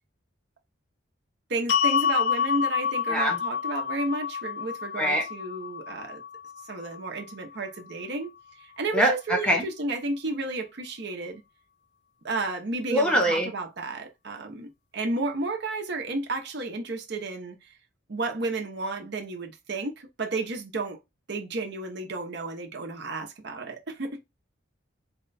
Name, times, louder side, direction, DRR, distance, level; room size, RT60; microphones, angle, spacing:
voice 1, 1.5-6.2 6.6-8.3 8.6-11.4 12.2-17.6 18.1-21.0 21.3-24.2, right 2 dB, 55° right, 0.8 m, -32 dB
sound 1, 1.7-7.9, left 7 dB, 55° left, 0.6 m, -29 dB
voice 2, 3.1-3.4 5.0-5.3 8.9-9.7 12.9-13.5, right 1 dB, 5° left, 0.8 m, -23 dB
4.3 x 2.2 x 3.9 m
head